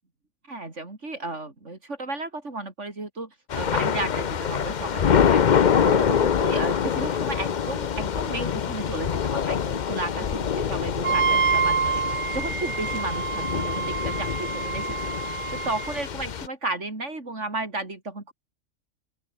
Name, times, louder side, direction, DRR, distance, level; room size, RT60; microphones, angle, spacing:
voice 1, 0.5-15.1 15.5-18.3, right 2 dB, 60° right, 4.3 m, -33 dB
Thunder / Rain, 3.5-16.5, left 7 dB, 45° left, 0.7 m, -25 dB
Wind instrument woodwind instrument, 11.0-16.0, right 6 dB, 40° right, 0.4 m, -27 dB
open air
omnidirectional pair, 1.4 m